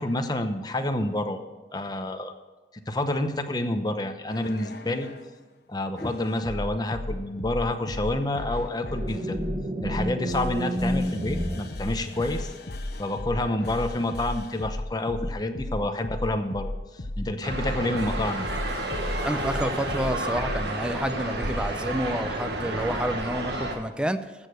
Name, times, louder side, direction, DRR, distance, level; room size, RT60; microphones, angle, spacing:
voice 1, 0.0-1.4 1.7-2.3 2.9-5.1 5.7-9.4 9.8-12.5 13.0-16.7 17.2-18.5, left 1 dB, 20° left, 7 dB, 0.8 m, -28 dB
sound 1, 4.3-5.3 6.0-20.6 21.3-21.7, left 1 dB, 60° left, 0.9 m, -35 dB
sound 2, 8.9-12.5, equal, 35° right, 1.3 m, -31 dB
sound 3, 17.4-23.8, right 2 dB, 70° right, 1.5 m, -31 dB
voice 2, 19.2-24.2, equal, 5° right, 11 dB, 0.5 m, -29 dB
14.5 x 6.7 x 6.5 m, 1.2 s
head